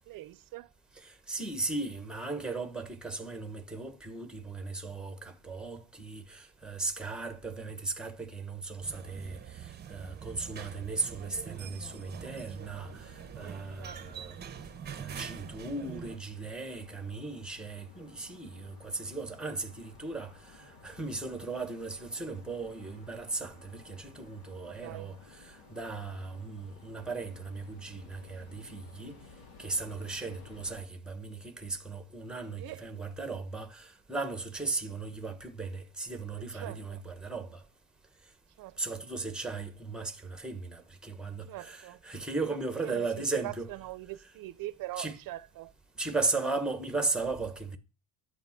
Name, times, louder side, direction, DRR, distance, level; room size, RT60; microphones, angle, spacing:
voice 1, 0.1-0.7 13.8-14.3 24.7-25.2 32.6-32.9 36.5-37.0 38.6-39.0 41.5-42.0 42.8-43.1 43.4-45.7, right 17 dB, 60° right, 0.6 m, -43 dB
voice 2, 1.0-14.4 14.9-29.2 29.6-37.6 38.8-43.7 45.0-45.2 46.0-47.8, right 3 dB, ahead, 1.1 m, -37 dB
sound 1, 8.8-16.2, right 8 dB, 25° right, 0.8 m, -44 dB
sound 2, 11.5-30.8, left 4 dB, 80° left, 3.2 m, -56 dB
11.0 x 8.6 x 5.8 m
cardioid pair, 175°, 38 cm